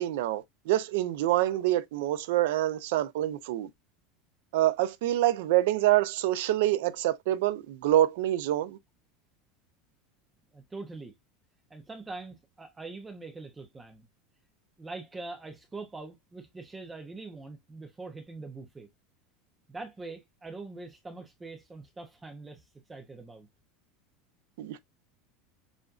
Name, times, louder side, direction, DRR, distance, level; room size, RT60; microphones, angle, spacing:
voice 1, 0.0-3.7 4.5-8.8 24.6-24.8, right 14 dB, 70° right, 0.6 m, -26 dB
voice 2, 10.5-11.1 11.7-14.1 14.8-18.9 19.7-22.6 22.9-23.5, right 3 dB, 10° right, 0.6 m, -43 dB
7.0 x 2.5 x 2.4 m
supercardioid pair, 170°, 0 cm